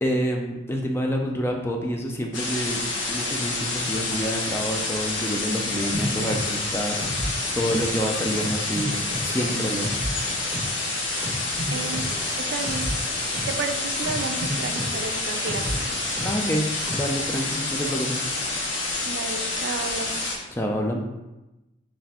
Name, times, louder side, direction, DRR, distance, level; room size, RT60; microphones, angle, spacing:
voice 1, 0.0-2.8 3.1-7.0 7.5-9.0 9.2-9.9 16.2-16.7 16.9-18.2 20.5-21.0, equal, 15° left, 1 dB, 0.4 m, -27 dB
sound 1, 2.3-20.4, left 2 dB, 90° left, 0.8 m, -28 dB
sound 2, 5.9-8.0 8.3-10.8 11.2-13.6 14.0-16.5 16.8-17.2, equal, 35° right, 1.0 m, -33 dB
voice 2, 11.7-12.0 12.5-12.9 13.5-15.9 17.8-18.0 18.9-20.3, right 4 dB, 70° right, 7 dB, 0.4 m, -32 dB
4.0 x 3.2 x 2.9 m, 1.0 s
head